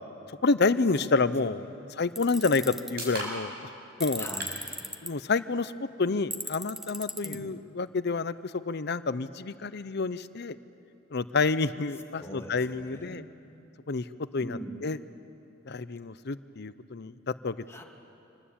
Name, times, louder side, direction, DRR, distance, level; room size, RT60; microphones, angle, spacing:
voice 1, 0.4-1.7 2.0-3.7 4.0-4.2 5.0-10.6 11.1-13.2 13.9-14.0 14.3-15.0 15.7-17.1 17.4-17.6, left 4 dB, 55° left, 14 dB, 0.7 m, -28 dB
Tools, 2.2-2.9 4.0-5.1 6.3-7.4, equal, ahead, 0.8 m, -36 dB
sound 1, 2.2-16.1, right 1 dB, 55° right, 6.4 m, -48 dB
voice 2, 4.1-4.7 7.2-7.5 12.2-13.4 14.4-14.8 17.7-17.8, equal, 15° left, 0 dB, 2.3 m, -42 dB
26.5 x 20.0 x 8.7 m, 2.7 s
head